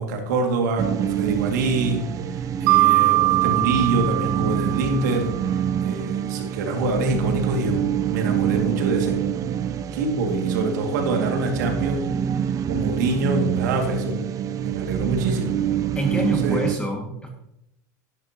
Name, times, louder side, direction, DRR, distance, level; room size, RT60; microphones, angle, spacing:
voice 1, 0.0-7.8 8.1-9.2 9.9-12.1 12.7-14.3 14.6-15.5 16.2-16.8, right 3 dB, 80° right, 3 dB, 2.3 m, -26 dB
sound 1, 0.8-16.8, right 9 dB, 35° right, 0.6 m, -26 dB
Mallet percussion, 2.7-5.4, right 20 dB, 65° right, 0.9 m, -21 dB
voice 2, 16.0-17.3, right 1 dB, 10° left, 1 dB, 2.1 m, -26 dB
11.0 x 10.5 x 3.0 m, 0.80 s
supercardioid pair, 115°, 10 cm